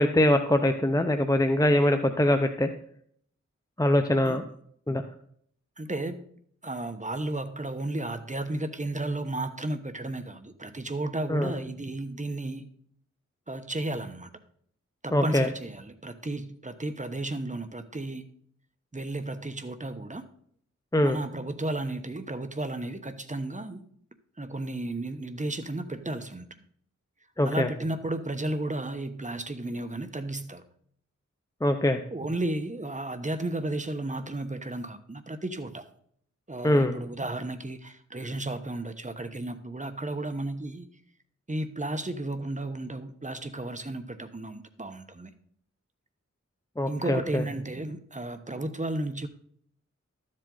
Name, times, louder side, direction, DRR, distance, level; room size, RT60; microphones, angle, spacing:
voice 1, 0.0-2.7 3.8-4.4 4.9-5.0 11.3-11.5 15.1-15.5 20.9-21.2 27.4-27.7 31.6-32.0 36.6-37.0 46.8-47.4, left 1 dB, 10° left, 6 dB, 0.7 m, -23 dB
voice 2, 5.8-6.2 6.6-12.7 13.5-14.3 15.0-18.2 18.9-20.2 21.0-23.8 24.4-26.5 27.4-30.6 32.1-35.8 36.5-40.9 41.5-45.3 46.9-49.3, right 2 dB, 25° right, 9 dB, 1.0 m, -33 dB
12.5 x 7.6 x 3.9 m, 0.63 s
wide cardioid pair, 60°, 29 cm